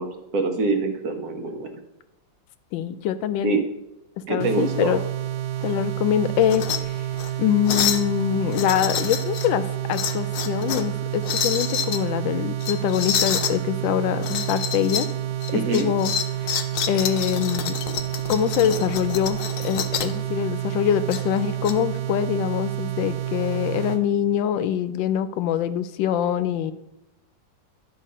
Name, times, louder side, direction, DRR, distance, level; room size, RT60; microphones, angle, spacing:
voice 1, 0.0-1.8 3.4-3.6 4.3-5.0 15.5-15.9, right 3 dB, 60° right, 5 dB, 1.2 m, -25 dB
voice 2, 2.7-3.6 4.3-5.0 5.6-7.0 7.4-15.1 15.7-16.1 16.4-16.6 16.9-17.8 18.3-26.7, left 10 dB, 85° left, 13 dB, 1.3 m, -24 dB
sound 1, 4.4-24.0, right 12 dB, 80° right, 1.3 m, -29 dB
sound 2, 6.4-6.8 7.1-7.3 7.7-8.1 8.5-9.5 9.9-10.9 11.2-12.0 12.6-13.6 14.2-15.1 15.4-20.2 21.1-21.7, left 8 dB, 65° left, 1.0 m, -28 dB
11.5 x 3.8 x 5.4 m, 0.89 s
omnidirectional pair, 2.0 m